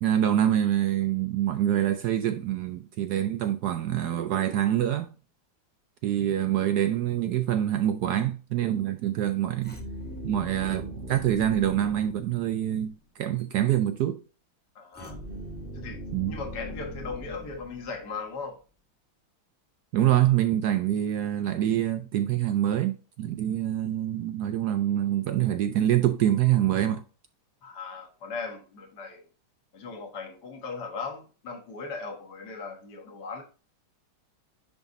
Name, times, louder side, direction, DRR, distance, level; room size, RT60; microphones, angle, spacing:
voice 1, 0.0-5.1 6.0-9.8 10.2-14.2 16.1-16.4 19.9-27.0, right 11 dB, 75° right, 0.9 m, -25 dB
sound 1, 9.6-12.9 14.9-18.2, equal, 5° left, 1.0 m, -40 dB
voice 2, 14.8-15.2 15.7-18.6 27.6-29.3 29.7-33.4, left 4 dB, 55° left, 2.0 m, -38 dB
10.5 x 3.6 x 2.6 m
omnidirectional pair, 2.3 m